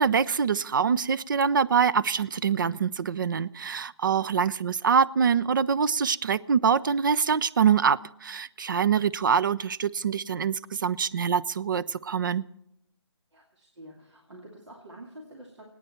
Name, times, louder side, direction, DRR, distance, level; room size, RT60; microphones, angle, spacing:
voice 1, 0.0-12.4, right 6 dB, 45° right, 18 dB, 0.4 m, -24 dB
voice 2, 13.3-15.7, right 1 dB, 75° right, -1 dB, 2.6 m, -48 dB
26.0 x 9.3 x 4.3 m, 0.80 s
figure-of-eight pair, 160°, 15 cm